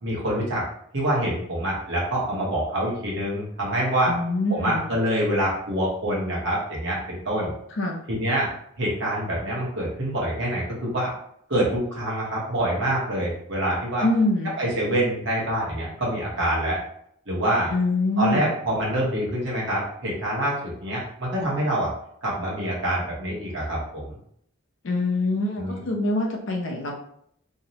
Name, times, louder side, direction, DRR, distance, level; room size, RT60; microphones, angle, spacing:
voice 1, 0.0-0.6 0.9-4.1 4.5-7.5 8.1-8.5 8.8-11.1 11.5-14.1 14.6-16.8 17.3-17.7 18.2-21.9 22.2-24.2 25.6-25.8, right 1 dB, 55° right, -5 dB, 0.9 m, -26 dB
voice 2, 4.1-4.9 7.8-8.0 14.0-14.6 17.7-18.6 24.8-26.9, left 2 dB, 60° left, 1 dB, 0.5 m, -24 dB
2.6 x 2.0 x 2.7 m, 0.69 s
head